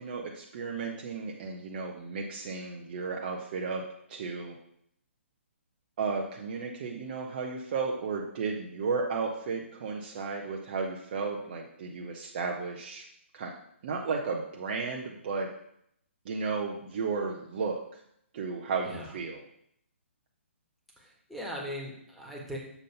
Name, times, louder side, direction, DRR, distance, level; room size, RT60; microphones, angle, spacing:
voice 1, 0.0-3.8 4.1-4.5 6.0-13.0 13.3-13.5 13.8-15.5 16.2-17.8 18.3-19.4, right 4 dB, 45° right, 0 dB, 0.8 m, -33 dB
voice 2, 18.8-19.2 21.0-22.6, equal, ahead, -3 dB, 1.5 m, -39 dB
7.0 x 3.8 x 5.7 m, 0.72 s
figure-of-eight pair, 135°, 7 cm